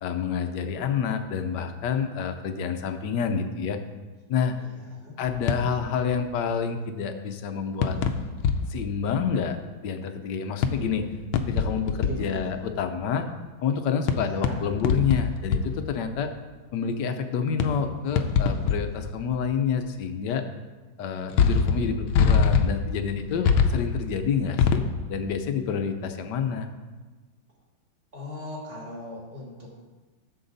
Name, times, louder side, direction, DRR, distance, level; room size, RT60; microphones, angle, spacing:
voice 1, 0.0-3.8 4.3-4.6 5.2-8.0 8.7-9.6 9.8-11.1 11.5-13.3 13.6-16.3 16.7-20.4 21.0-24.8 25.1-26.7, left 6 dB, 65° left, 7 dB, 1.3 m, -28 dB
sound 1, 5.3-6.0 7.8-8.8 9.1-9.2 10.6-12.2 12.7-12.8 14.1-15.8 16.1-16.2 17.6-17.8 18.2-19.1 19.3-19.4 21.3-24.8, left 6 dB, 85° left, 1.6 m, -23 dB
voice 2, 12.0-12.5 14.1-14.6 28.1-29.8, left 1 dB, 25° right, -5 dB, 3.1 m, -39 dB
13.5 x 6.8 x 4.0 m, 1.3 s
omnidirectional pair, 2.2 m